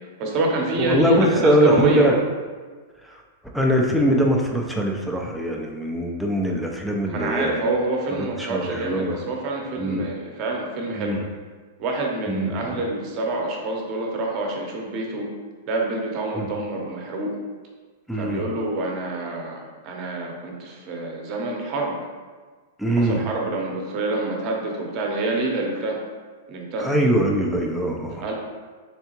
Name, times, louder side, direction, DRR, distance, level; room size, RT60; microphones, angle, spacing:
voice 1, 0.2-2.1 7.1-11.2 11.8-15.3 15.7-17.4 18.2-21.9 23.0-26.0 26.5-26.9 28.2-28.3, right 2 dB, 40° right, 0 dB, 0.8 m, -27 dB
voice 2, 0.8-2.2 3.0-3.2 3.5-7.7 8.1-9.2 9.8-10.0 11.0-11.2 12.3-12.8 16.4-16.5 18.1-18.4 22.8-23.2 26.8-28.2, right 1 dB, ahead, -1 dB, 0.4 m, -22 dB
3.7 x 3.3 x 2.9 m, 1.5 s
hypercardioid pair, 145°, 0 cm